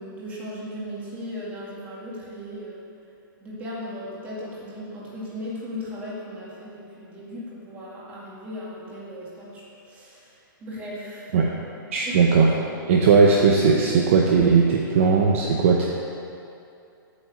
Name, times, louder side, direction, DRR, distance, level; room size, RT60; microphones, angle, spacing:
voice 1, 0.0-2.9 3.4-11.5 12.0-12.3, left 1 dB, 15° right, -6 dB, 2.0 m, -37 dB
voice 2, 11.9-12.5 12.9-15.9, right 5 dB, 35° right, -1 dB, 0.8 m, -18 dB
8.4 x 7.8 x 7.8 m, 2.6 s
hypercardioid pair, 175°, 12 cm